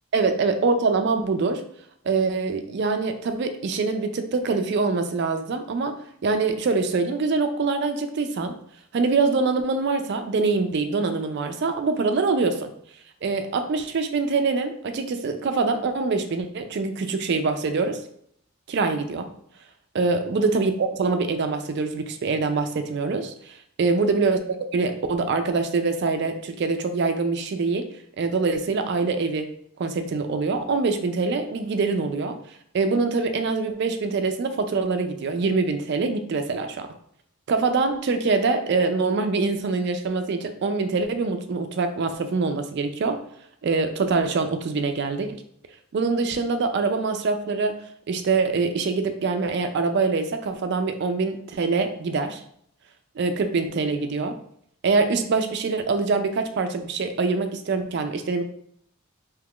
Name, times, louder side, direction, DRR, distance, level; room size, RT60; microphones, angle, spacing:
voice 1, 0.1-1.6 2.0-5.9 6.2-8.5 8.9-12.7 13.2-18.0 18.7-19.3 19.9-27.9 28.2-29.5 29.8-32.4 32.7-36.9 37.5-43.2 43.6-45.4 45.9-47.8 48.1-52.4 53.2-54.4 54.8-58.4, right 4 dB, 50° right, 7 dB, 0.3 m, -24 dB
2.9 x 2.3 x 3.6 m, 0.67 s
head